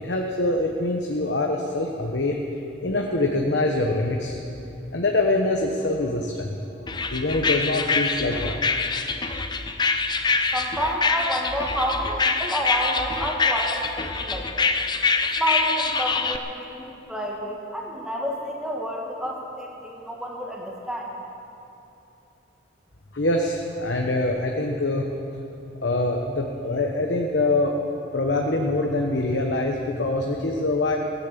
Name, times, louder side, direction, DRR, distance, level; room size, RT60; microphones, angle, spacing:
voice 1, 0.0-2.4 2.8-4.4 4.9-6.5 7.1-8.6 23.1-25.0 25.8-27.7 28.1-31.0, left 2 dB, 65° left, 1 dB, 1.1 m, -24 dB
sound 1, 6.9-16.4, left 4 dB, 20° left, 0.6 m, -25 dB
voice 2, 10.5-14.6 15.2-21.1, equal, 5° right, -1 dB, 1.9 m, -29 dB
17.0 x 10.5 x 7.6 m, 2.9 s
head